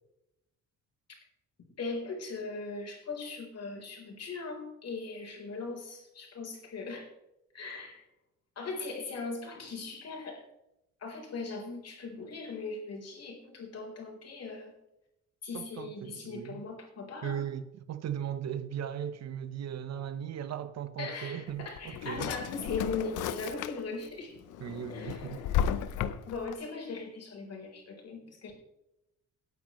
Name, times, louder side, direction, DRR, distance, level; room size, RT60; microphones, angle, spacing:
voice 1, 1.8-7.1 7.5-8.0 8.6-10.4 11.0-14.7 15.4-17.4 21.0-24.4 24.9-25.6 26.3-28.5, left 4 dB, 55° left, 4.0 m, -39 dB
voice 2, 15.5-16.6 17.2-22.3 24.6-25.4, right 9 dB, 60° right, 0.9 m, -37 dB
Drawer open or close, 21.5-24.1 24.5-26.5, left 9 dB, 90° left, 0.7 m, -34 dB
18.0 x 9.2 x 3.1 m
cardioid pair, 90°, 30 cm